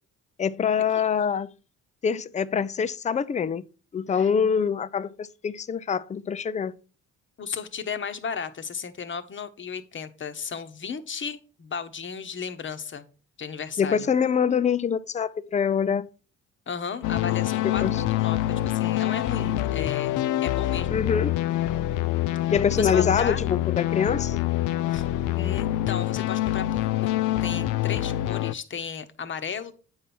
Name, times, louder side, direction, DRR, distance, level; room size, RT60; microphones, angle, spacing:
voice 1, 0.4-1.5 2.0-3.6 3.9-6.7 13.8-16.1 17.8-17.9 20.9-21.3 22.5-24.4, left 7 dB, 25° left, 0.5 m, -25 dB
voice 2, 7.4-13.1 13.4-14.1 16.7-21.0 22.4-23.4 24.9-25.0 25.3-29.7, left 6 dB, 40° left, 1.1 m, -35 dB
sound 1, 17.0-28.5, left 14 dB, 85° left, 0.5 m, -26 dB
8.8 x 5.5 x 4.3 m
cardioid pair, 90°, 30 cm